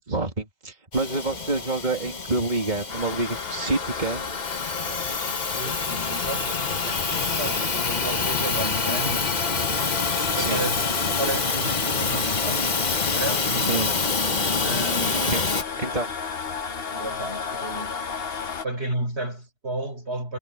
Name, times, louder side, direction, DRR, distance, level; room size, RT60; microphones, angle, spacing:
voice 1, 0.1-4.3 10.3-10.6 13.7-13.9 15.0-15.4 15.8-16.1, right 2 dB, 40° right, 2.8 m, -27 dB
Hiss / Toilet flush / Trickle dribble, 0.9-15.6, left 4 dB, 40° left, 1.3 m, -27 dB
sound 1, 2.9-18.7, left 6 dB, 60° left, 1.3 m, -33 dB
voice 2, 5.5-9.3 10.3-12.7 13.1-13.8 14.6-15.5 16.9-18.0 18.6-20.4, right 1 dB, 70° right, 6.3 m, -33 dB
omnidirectional pair, 1.1 m